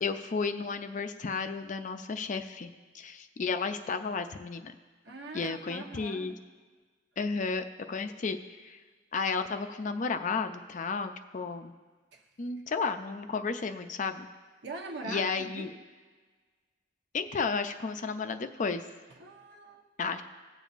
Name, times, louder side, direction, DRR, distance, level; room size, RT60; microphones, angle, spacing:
voice 1, 0.0-2.7 2.9-4.7 5.3-6.3 7.2-8.8 9.1-11.7 12.4-14.3 15.0-15.7 17.1-18.8 20.0-20.2, left 4 dB, 40° left, 8 dB, 0.4 m, -33 dB
voice 2, 5.0-6.4 12.1-12.3 14.6-15.8 19.2-19.9, right 2 dB, 65° right, 3 dB, 1.0 m, -42 dB
17.5 x 7.1 x 2.5 m, 1.4 s
head